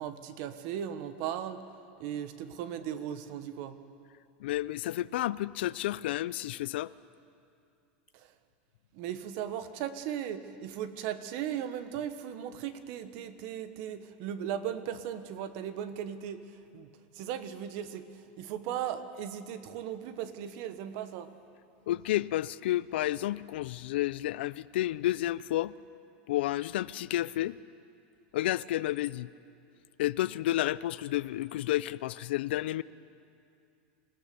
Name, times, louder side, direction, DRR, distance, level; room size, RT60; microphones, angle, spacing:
voice 1, 0.0-1.6 2.0-3.8 8.1-8.3 8.9-21.3, right 9 dB, 45° right, 11 dB, 1.3 m, -37 dB
voice 2, 4.4-6.9 21.9-25.7 26.3-27.6 28.3-29.3 30.0-32.8, left 14 dB, 75° left, 18 dB, 0.5 m, -31 dB
26.5 x 18.0 x 7.0 m, 2.5 s
supercardioid pair, 165°, 6 cm